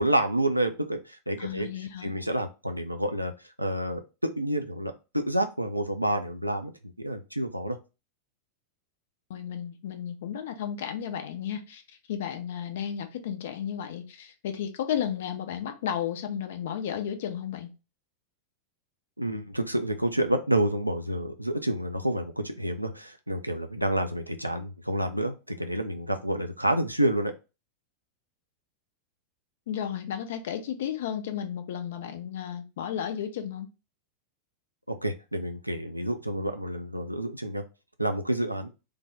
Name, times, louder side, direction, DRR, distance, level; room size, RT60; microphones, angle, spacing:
voice 1, 0.0-1.7 2.0-3.3 3.6-6.7 7.0-7.8 19.2-27.3 34.9-37.6 38.0-38.7, right 1 dB, 90° right, 6 dB, 0.4 m, -29 dB
voice 2, 1.4-2.1 9.3-11.8 12.1-17.7 29.7-33.7, left 9 dB, 55° left, 7 dB, 0.5 m, -33 dB
3.3 x 2.2 x 3.4 m, 0.29 s
figure-of-eight pair, 90°, 0 cm